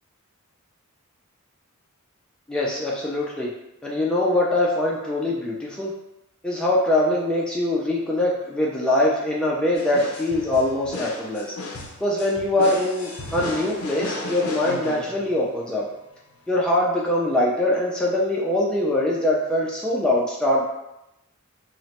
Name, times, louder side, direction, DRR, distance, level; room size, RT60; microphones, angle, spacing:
voice 1, 2.5-3.5 3.8-5.9 6.4-11.5 12.0-15.8 16.5-20.7, left 1 dB, 5° left, -4 dB, 0.3 m, -23 dB
sound 1, 9.8-15.6, left 2 dB, 85° left, 0.4 m, -34 dB
2.9 x 2.1 x 2.8 m, 0.89 s
head